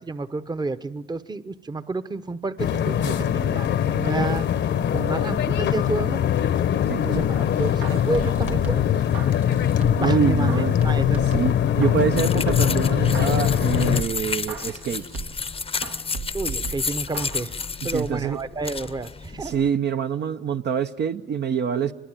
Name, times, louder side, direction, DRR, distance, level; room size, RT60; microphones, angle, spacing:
voice 1, 0.0-3.7 3.9-4.5 4.9-6.2 7.0-8.9 9.9-10.5 10.8-11.2 16.3-17.5 17.8-19.6, right 3 dB, 20° right, 11 dB, 0.9 m, -30 dB
sound 1, 2.6-14.0, left 9 dB, 65° left, 1.0 m, -22 dB
sound 2, 7.1-10.1 10.5-12.2 12.5-15.5 15.8-17.5 17.8-17.9, right 5 dB, 80° right, 1.9 m, -36 dB
voice 2, 10.0-10.7 11.3-15.0 17.9-18.4 19.4-21.9, right 7 dB, 60° right, 8 dB, 0.8 m, -25 dB
sound 3, 12.2-19.7, left 5 dB, 30° left, 0.7 m, -31 dB
24.5 x 21.5 x 9.1 m, 1.2 s
cardioid pair, 90°, 20 cm